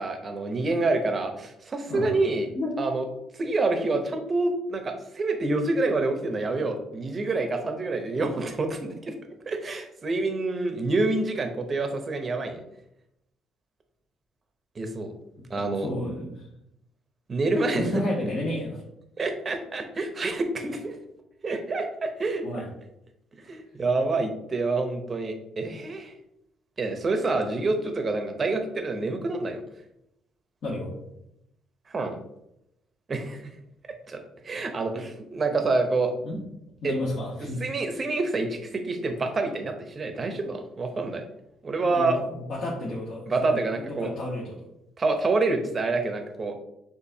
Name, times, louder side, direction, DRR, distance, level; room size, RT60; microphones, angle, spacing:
voice 1, 0.0-3.0 3.3-9.1 9.5-12.6 14.8-15.1 15.5-15.9 17.3-17.9 19.2-21.0 21.4-22.4 23.4-26.1 26.8-29.6 31.9-32.2 33.1-33.5 34.1-36.1 36.8-36.9 37.6-41.2 41.6-42.2 43.3-44.1 45.0-46.5, right 3 dB, 35° right, 6 dB, 0.7 m, -27 dB
voice 2, 15.5-16.5 17.7-18.8 22.4-22.7 30.6-30.9 36.2-36.4 36.8-37.6 41.8-44.6, left 1 dB, 60° left, -6 dB, 1.2 m, -31 dB
6.6 x 2.6 x 2.7 m, 0.83 s
cardioid pair, 105°, 0 cm